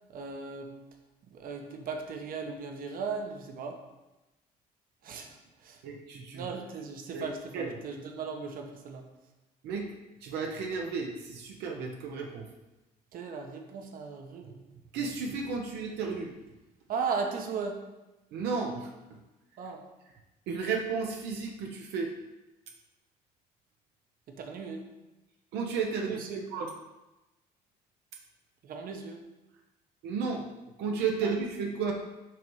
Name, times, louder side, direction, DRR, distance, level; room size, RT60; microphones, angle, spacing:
voice 1, 0.1-0.7 1.3-3.8 5.0-5.8 6.3-9.1 13.1-14.6 16.9-17.8 19.6-19.8 24.3-24.8 26.1-26.4 28.6-29.2 31.2-31.3, right 5 dB, 55° right, 3 dB, 0.9 m, -37 dB
voice 2, 5.8-6.5 7.1-7.2 7.5-7.7 9.6-9.9 10.2-12.5 14.9-16.3 18.3-19.2 20.5-22.1 25.5-26.2 26.5-26.7 30.0-30.4 30.8-31.9, right 5 dB, 85° right, 2 dB, 0.8 m, -33 dB
5.8 x 3.1 x 5.3 m, 1.0 s
cardioid pair, 110°, 17 cm